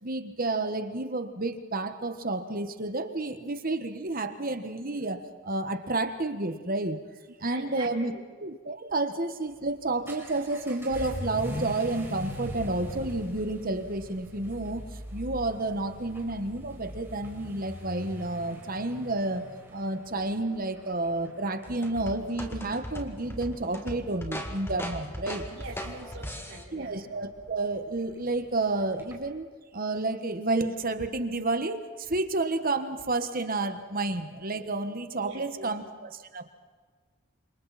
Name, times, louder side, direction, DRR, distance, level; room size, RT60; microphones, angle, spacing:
voice 1, 0.0-7.0 7.4-8.1 8.4-14.8 15.1-19.4 19.7-25.5 26.7-29.5 29.7-36.4, right 2 dB, 40° right, 8 dB, 1.5 m, -30 dB
voice 2, 7.4-8.2 25.5-26.9 35.2-35.7, right 2 dB, 75° right, -6 dB, 4.1 m, -43 dB
Vehicle / Accelerating revving vroom, 9.5-29.3, equal, 10° right, 4.3 m, -43 dB
sound 1, 21.7-26.6, equal, 10° left, 2.1 m, -38 dB
29.0 x 26.5 x 4.3 m, 1.5 s
head